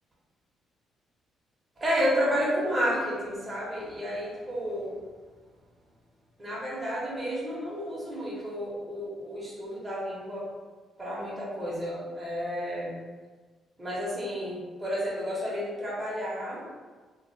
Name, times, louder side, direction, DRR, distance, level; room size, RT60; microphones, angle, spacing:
voice 1, 1.8-4.9 6.4-10.5 11.0-13.0 13.8-16.6, equal, 25° right, -6 dB, 0.8 m, -31 dB
2.3 x 2.2 x 2.6 m, 1.4 s
cardioid pair, 90°, 0 cm